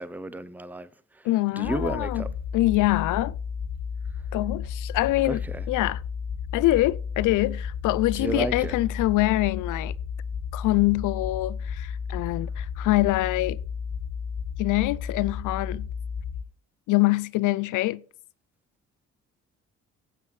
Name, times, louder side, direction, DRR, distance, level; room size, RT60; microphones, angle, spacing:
voice 1, 0.0-1.3 1.5-2.3 5.2-5.7 8.1-8.7, right 2 dB, 5° right, 0.6 m, -32 dB
voice 2, 1.2-2.2 2.5-3.3 4.3-5.4 5.7-6.0 6.5-9.9 10.5-13.6 14.6-15.9 16.9-18.0, left 18 dB, 85° left, 0.5 m, -24 dB
sound 1, 1.6-16.4, left 6 dB, 35° left, 0.6 m, -33 dB
16.0 x 7.5 x 3.2 m
cardioid pair, 90°, 30 cm